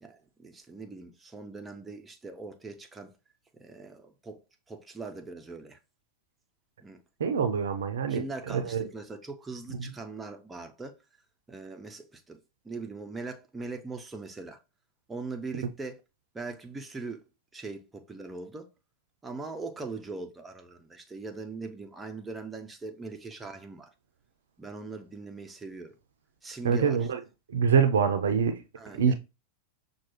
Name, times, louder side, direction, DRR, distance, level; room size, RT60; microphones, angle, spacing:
voice 1, 0.0-3.1 3.6-4.4 4.7-5.8 6.8-7.0 8.1-11.0 11.5-12.4 12.6-14.6 15.1-16.0 16.3-17.2 17.5-18.7 19.2-23.9 24.6-25.9 26.4-27.1 28.8-29.1, right 3 dB, 10° right, 0.6 m, -41 dB
voice 2, 7.2-8.2 8.5-8.8 26.6-27.2 27.5-28.6 29.0-29.1, right 6 dB, 65° right, 0.5 m, -25 dB
5.8 x 2.3 x 3.0 m
figure-of-eight pair, 90°, 0 cm